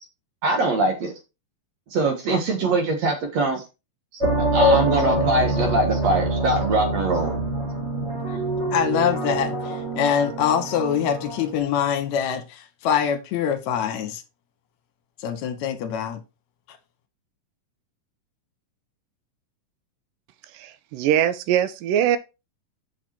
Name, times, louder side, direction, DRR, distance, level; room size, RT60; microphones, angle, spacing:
voice 1, 0.4-1.1 1.9-3.6 4.5-7.4, right 2 dB, 55° right, 2.5 m, -23 dB
sound 1, 4.2-11.6, right 1 dB, 20° right, 3.1 m, -25 dB
voice 2, 8.7-14.2 15.2-16.2, left 8 dB, 65° left, 2.1 m, -24 dB
voice 3, 20.5-22.2, right 10 dB, 85° right, 2.4 m, -22 dB
6.6 x 6.0 x 4.5 m
omnidirectional pair, 3.9 m